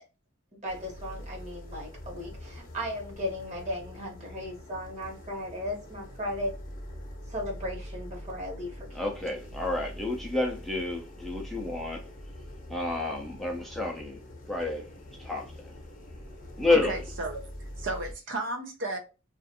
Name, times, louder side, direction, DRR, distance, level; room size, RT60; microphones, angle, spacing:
sound 1, 0.6-18.1, equal, 45° left, 0.7 m, -44 dB
voice 1, 0.6-6.5 7.3-8.9, left 1 dB, 35° right, 1.1 m, -36 dB
voice 2, 8.9-12.1 12.7-14.2 14.5-14.9 15.2-15.7 16.6-17.0, left 2 dB, ahead, 0.4 m, -30 dB
voice 3, 16.8-19.0, right 2 dB, 65° right, 0.5 m, -34 dB
2.4 x 2.4 x 2.5 m
head